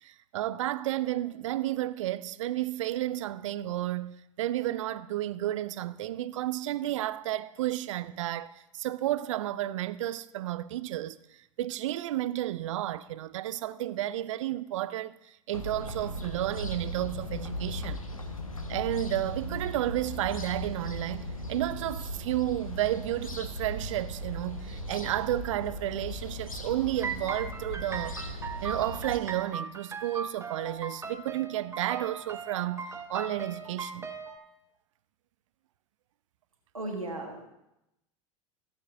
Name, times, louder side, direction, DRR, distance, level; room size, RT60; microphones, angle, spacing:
voice 1, 0.0-11.2 11.6-18.0 18.7-34.1, right 14 dB, 65° right, 0.6 m, -32 dB
sound 1, 15.5-29.2, left 1 dB, 85° left, 1.1 m, -38 dB
sound 2, 27.0-34.4, right 5 dB, 15° right, 1.2 m, -39 dB
voice 2, 36.7-37.5, right 2 dB, 90° right, 1.4 m, -36 dB
16.5 x 7.2 x 4.0 m
figure-of-eight pair, 75°, 17 cm